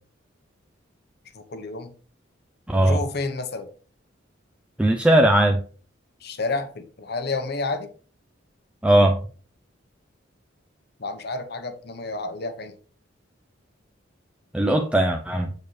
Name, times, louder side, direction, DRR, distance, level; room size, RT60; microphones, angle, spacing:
voice 1, 1.3-1.9 2.7-3.7 6.2-7.9 11.0-12.8, left 3 dB, 60° left, 1.0 m, -30 dB
voice 2, 2.7-3.0 4.8-5.6 8.8-9.2 14.5-15.5, right 1 dB, 5° right, 0.5 m, -18 dB
6.8 x 6.6 x 3.3 m
head